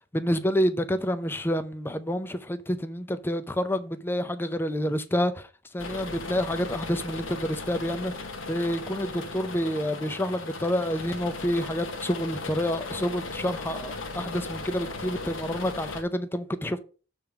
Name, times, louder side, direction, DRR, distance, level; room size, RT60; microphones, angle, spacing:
voice 1, 0.1-5.5 5.7-8.1 8.5-16.8, equal, 10° left, 0.4 m, -28 dB
sound 1, 5.8-16.0, left 3 dB, 70° left, 1.1 m, -37 dB
6.9 x 3.4 x 5.7 m
head